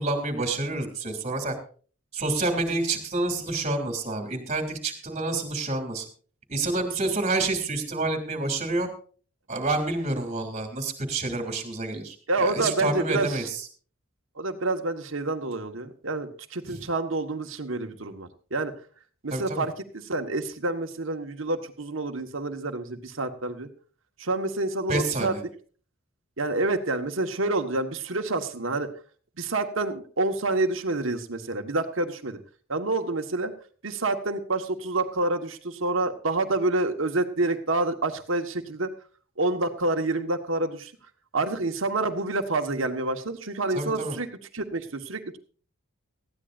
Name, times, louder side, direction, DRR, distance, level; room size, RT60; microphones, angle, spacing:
voice 1, 0.0-1.5 2.1-6.0 6.5-8.9 9.5-13.6 16.7-16.8 19.3-19.7 24.9-25.4 43.7-44.2, right 2 dB, 30° right, 5 dB, 2.9 m, -28 dB
voice 2, 12.3-13.5 14.4-18.7 19.2-23.7 24.2-25.3 26.4-28.9 29.4-32.4 32.7-33.5 33.8-38.9 39.4-40.9 41.3-44.3 44.5-45.4, right 2 dB, 70° right, 6 dB, 1.5 m, -28 dB
19.0 x 14.5 x 2.6 m, 0.41 s
head